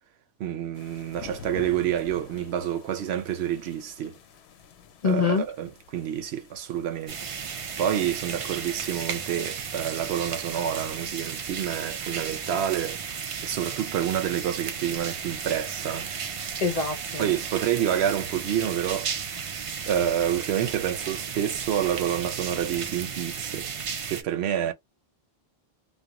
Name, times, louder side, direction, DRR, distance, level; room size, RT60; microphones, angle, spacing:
voice 1, 0.4-4.2 5.0-7.2 7.8-13.0 13.4-16.1 17.2-19.1 19.9-23.7 24.1-24.7, right 10 dB, 85° right, 0.8 m, -28 dB
sound 1, 0.7-10.4, left 7 dB, 90° left, 0.8 m, -49 dB
voice 2, 5.0-5.5 16.6-17.3, left 5 dB, 50° left, 0.5 m, -25 dB
sound 2, 7.1-24.2, right 6 dB, 60° right, 0.3 m, -34 dB
2.3 x 2.1 x 2.8 m
omnidirectional pair, 1.1 m